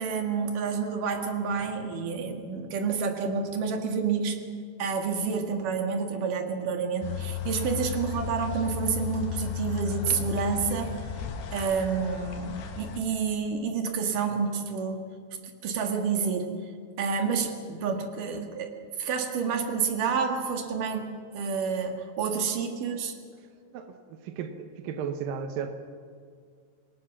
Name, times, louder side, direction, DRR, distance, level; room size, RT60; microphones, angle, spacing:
voice 1, 0.0-4.4 4.8-10.9 11.5-15.0 15.4-16.5 17.0-18.7 19.0-21.1 21.3-23.1, right 5 dB, 55° right, 4 dB, 2.7 m, -29 dB
sound 1, 7.0-13.0, left 9 dB, 60° left, 3.6 m, -35 dB
voice 2, 23.7-25.7, right 7 dB, 80° right, 7 dB, 2.0 m, -35 dB
26.5 x 21.5 x 6.1 m, 2.1 s
omnidirectional pair, 5.7 m